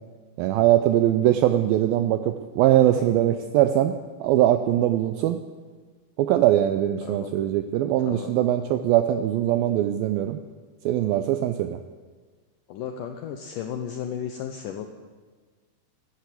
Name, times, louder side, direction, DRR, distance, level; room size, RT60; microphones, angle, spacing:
voice 1, 0.4-3.9 4.2-5.4 6.2-10.4 10.9-11.8, right 12 dB, 85° right, 9 dB, 2.1 m, -21 dB
voice 2, 7.0-7.4 8.0-8.3 12.7-14.9, left 8 dB, 80° left, 5 dB, 1.9 m, -34 dB
13.0 x 12.5 x 8.3 m, 1.4 s
omnidirectional pair, 4.9 m